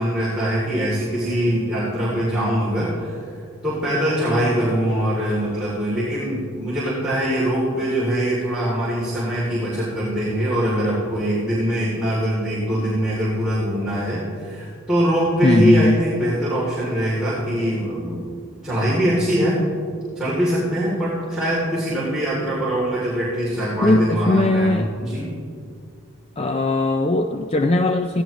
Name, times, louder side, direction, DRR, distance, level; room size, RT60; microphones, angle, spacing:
voice 1, 0.0-3.2 3.6-18.3 18.6-19.6 20.1-25.3, equal, 5° right, -10 dB, 2.9 m, -22 dB
voice 2, 15.4-16.0 23.8-24.9 26.4-28.2, left 2 dB, 25° left, 6 dB, 0.4 m, -19 dB
16.5 x 16.5 x 3.1 m, 2.3 s
head